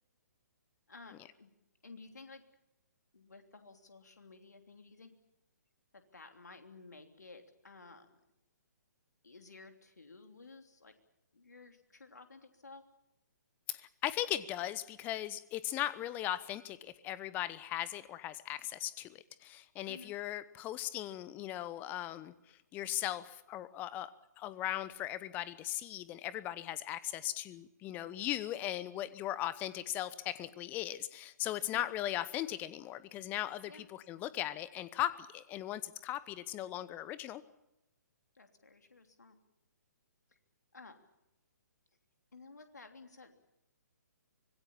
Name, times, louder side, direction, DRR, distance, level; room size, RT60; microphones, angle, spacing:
voice 1, 0.9-1.5 1.8-2.4 3.1-5.1 5.9-8.1 9.2-10.9 11.3-12.8 19.8-20.2 31.7-31.9 33.7-33.9 38.3-39.4 40.3-40.4 40.7-41.0 42.3-43.3, left 3 dB, 70° left, 6 dB, 3.2 m, -54 dB
voice 2, 13.7-22.3 22.7-24.1 24.4-37.4, left 13 dB, 20° left, 17 dB, 0.9 m, -38 dB
25.0 x 21.0 x 7.3 m, 0.89 s
figure-of-eight pair, 130°, 10 cm